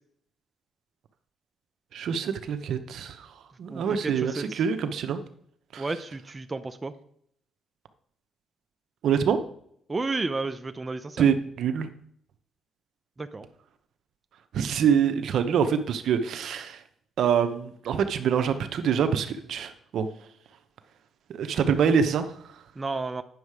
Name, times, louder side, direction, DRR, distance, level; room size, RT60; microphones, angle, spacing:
voice 1, 1.9-5.2 5.7-5.8 9.0-9.4 11.2-11.9 14.5-16.8 17.2-20.1 21.3-22.6, right 7 dB, 70° right, 9 dB, 0.8 m, -25 dB
voice 2, 3.7-4.6 5.8-6.9 9.9-11.2 13.2-13.5 22.8-23.2, right 3 dB, 25° right, 9 dB, 0.6 m, -32 dB
9.4 x 6.5 x 4.8 m, 0.68 s
cardioid pair, 90°, 0 cm